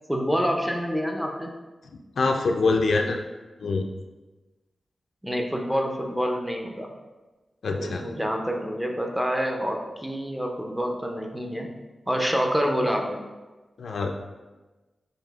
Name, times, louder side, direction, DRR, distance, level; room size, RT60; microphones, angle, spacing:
voice 1, 0.1-1.5 5.2-6.9 7.7-11.7 12.1-13.2, equal, 5° right, 1 dB, 0.4 m, -27 dB
voice 2, 2.2-3.2 3.6-3.9 7.6-8.1 13.8-14.3, left 3 dB, 70° left, 4 dB, 0.3 m, -24 dB
6.4 x 2.6 x 2.3 m, 1.2 s
wide cardioid pair, 155°, 0 cm